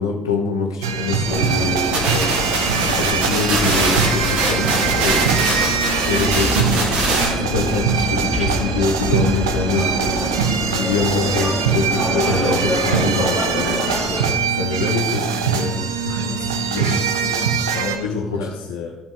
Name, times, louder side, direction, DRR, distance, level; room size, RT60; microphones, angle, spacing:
voice 1, 0.0-2.4 2.8-6.7 7.1-10.2 10.7-13.9 14.4-16.3 16.8-17.0 18.0-18.5, left 3 dB, 85° left, 1 dB, 1.2 m, -24 dB
sound 1, 0.8-18.0, right 6 dB, 80° right, 0.6 m, -22 dB
sound 2, 1.3-14.4, left 2 dB, 30° left, 2.3 m, -27 dB
sound 3, 1.9-7.3, right 2 dB, 55° right, 1.9 m, -22 dB
voice 2, 16.2-19.0, left 4 dB, 65° left, 1 dB, 0.8 m, -32 dB
13.5 x 5.3 x 3.8 m, 1.0 s
figure-of-eight pair, 50°, 2 cm